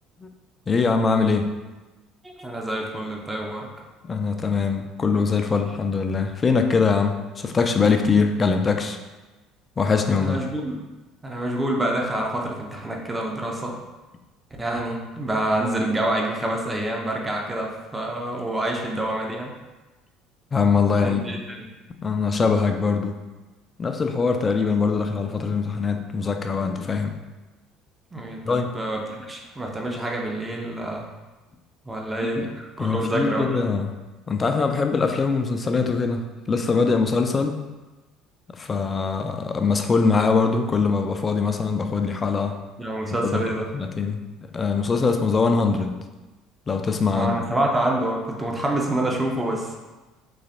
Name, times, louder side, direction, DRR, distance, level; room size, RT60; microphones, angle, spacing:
voice 1, 0.7-1.5 4.0-9.0 9.8-10.4 20.5-21.4 22.0-23.2 23.8-27.2 28.4-28.7 32.4-32.5 32.8-33.9 34.3-37.6 38.5-42.6 43.2-43.4 43.7-44.2 44.5-46.0 46.7-47.4, left 4 dB, 30° left, 6 dB, 0.4 m, -22 dB
voice 2, 2.2-3.7 10.1-10.7 11.2-13.8 14.6-19.5 21.0-21.7 28.1-31.0 31.8-33.6 39.2-39.3 42.8-43.7 47.1-49.8, right 1 dB, 15° right, 0 dB, 0.7 m, -27 dB
4.0 x 3.1 x 2.6 m, 1.2 s
figure-of-eight pair, 60°, 0 cm